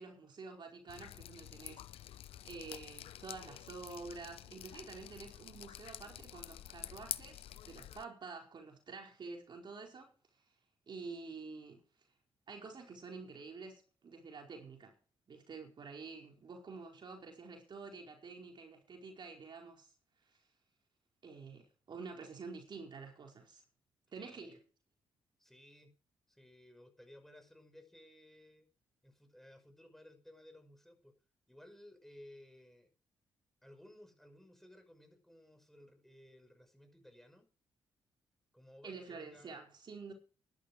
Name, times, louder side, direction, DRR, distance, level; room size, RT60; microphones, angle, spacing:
voice 1, 0.0-10.1 10.9-11.8 12.5-14.9 15.3-19.9 21.2-23.6 24.1-24.6 38.8-40.1, right 4 dB, 55° right, 4.7 m, -49 dB
Drip, 0.9-8.0, left 12 dB, 80° left, 0.7 m, -48 dB
voice 2, 24.1-24.6 25.4-25.9 26.3-28.7 29.0-31.1 31.5-32.9 33.6-37.5 38.5-39.7, left 1 dB, 5° left, 5.7 m, -58 dB
12.5 x 11.5 x 5.0 m
cardioid pair, 65°, 10 cm